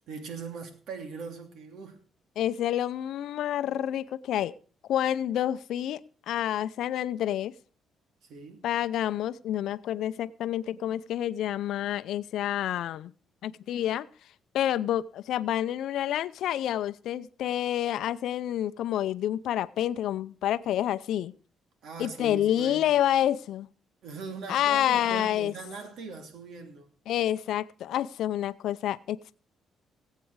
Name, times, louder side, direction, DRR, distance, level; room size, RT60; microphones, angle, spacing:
voice 1, 0.0-2.0 8.2-8.7 21.8-22.9 24.0-26.9, right 5 dB, 75° right, 2.8 m, -40 dB
voice 2, 2.4-4.5 4.9-7.5 8.6-13.1 13.4-14.1 14.5-21.3 22.0-23.7 24.5-25.5 27.1-29.3, left 11 dB, 80° left, 0.5 m, -28 dB
18.5 x 8.4 x 4.7 m
cardioid pair, 90°, 0 cm